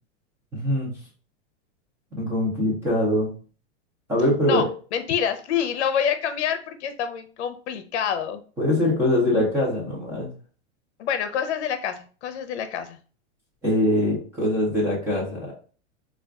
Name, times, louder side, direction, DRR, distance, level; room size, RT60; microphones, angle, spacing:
voice 1, 0.5-1.0 2.1-3.3 4.1-4.6 8.6-10.3 13.6-15.5, left 1 dB, 5° right, -5 dB, 0.5 m, -23 dB
voice 2, 4.9-8.4 11.0-13.0, left 8 dB, 65° left, 9 dB, 0.6 m, -27 dB
4.6 x 2.4 x 2.3 m, 0.39 s
supercardioid pair, 170°, 36 cm